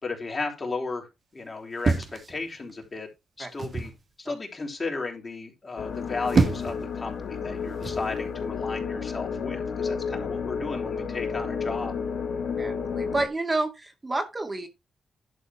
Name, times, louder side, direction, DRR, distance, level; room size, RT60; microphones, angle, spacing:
voice 1, 0.0-3.1 3.4-3.9 4.2-11.9, left 3 dB, 35° left, 3.8 m, -34 dB
sound 1, 1.8-2.9 3.6-4.0 6.0-6.9 7.8-8.1, right 4 dB, 50° right, 1.4 m, -26 dB
sound 2, 5.8-13.3, left 6 dB, 70° left, 2.3 m, -31 dB
voice 2, 12.6-14.7, right 2 dB, 25° right, 2.2 m, -29 dB
11.5 x 4.1 x 5.9 m
cardioid pair, 80°, 0 cm